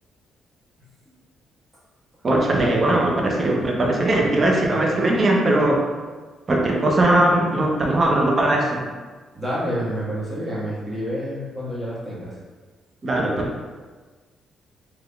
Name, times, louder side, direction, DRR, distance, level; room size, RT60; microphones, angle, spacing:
voice 1, 2.2-5.8 6.5-8.8 13.0-13.5, right 1 dB, 40° right, -1 dB, 0.6 m, -19 dB
voice 2, 9.3-12.4, equal, 20° right, -8 dB, 1.3 m, -28 dB
3.5 x 3.0 x 2.3 m, 1.4 s
cardioid pair, 90°, 0 cm